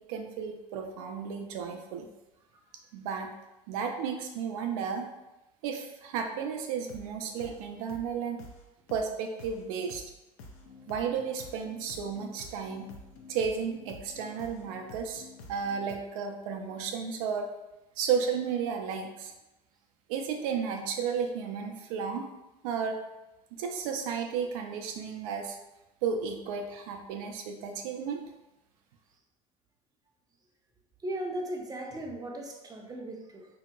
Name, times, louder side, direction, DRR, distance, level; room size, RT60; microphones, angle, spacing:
voice 1, 0.0-2.1 2.9-3.3 3.7-5.1 5.6-8.4 8.9-10.0 10.9-12.9 13.3-17.5 18.0-19.3 20.1-22.3 22.6-23.0 23.5-25.6 26.0-28.2, right 6 dB, 75° right, 4 dB, 0.5 m, -33 dB
sound 1, 6.9-7.1 7.4-7.6 7.9-8.1 8.4-8.6 8.9-9.1 9.4-9.6 9.9-10.1 10.4-16.0, left 2 dB, 70° left, 0.5 m, -49 dB
voice 2, 31.0-33.5, right 1 dB, 20° right, 1 dB, 0.6 m, -37 dB
2.8 x 2.8 x 2.2 m, 0.97 s
hypercardioid pair, 75°, 18 cm